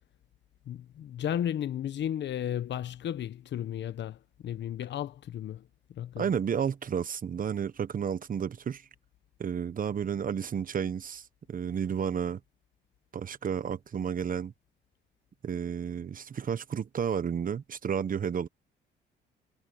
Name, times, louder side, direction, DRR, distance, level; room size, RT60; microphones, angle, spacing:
voice 1, 0.7-4.2 4.4-5.6 5.9-6.3, left 10 dB, 65° left, 1.0 m, -34 dB
voice 2, 6.2-8.8 9.4-12.4 13.1-14.5 15.4-18.5, right 7 dB, 45° right, 1.1 m, -32 dB
cardioid pair, 90°, 20 cm